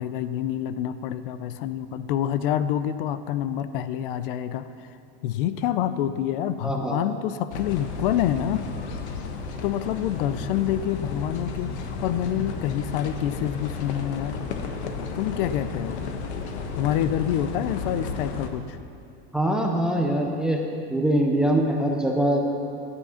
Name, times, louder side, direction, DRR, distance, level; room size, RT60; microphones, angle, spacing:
voice 1, 0.0-4.9 5.2-8.7 9.6-14.4 15.1-16.0 16.7-18.8, left 10 dB, 55° left, 13 dB, 0.5 m, -27 dB
voice 2, 6.6-7.0 19.3-20.6 20.9-22.4, right 1 dB, ahead, 1 dB, 0.4 m, -23 dB
sound 1, 7.5-18.5, left 4 dB, 80° left, 1.3 m, -33 dB
11.5 x 9.7 x 5.7 m, 2.5 s
supercardioid pair, 170°, 33 cm